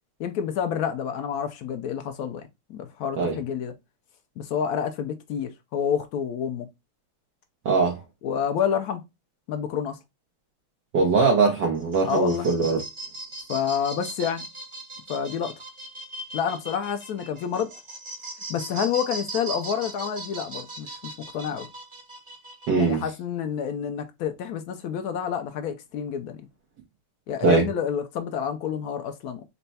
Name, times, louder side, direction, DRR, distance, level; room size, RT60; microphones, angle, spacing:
voice 1, 0.2-3.7 4.4-6.7 8.2-9.0 9.5-10.0 12.1-12.5 13.5-14.5 15.1-15.5 16.3-17.7 18.5-21.0 21.3-21.7 22.7-26.4 27.3-29.4, left 8 dB, 85° left, 0.8 m, -28 dB
voice 2, 7.6-8.0 10.9-12.8 22.7-23.0 27.4-27.7, right 4 dB, 60° right, 1.5 m, -21 dB
sound 1, 11.7-23.0, right 2 dB, 35° right, 0.4 m, -39 dB
4.3 x 2.2 x 4.0 m
omnidirectional pair, 2.2 m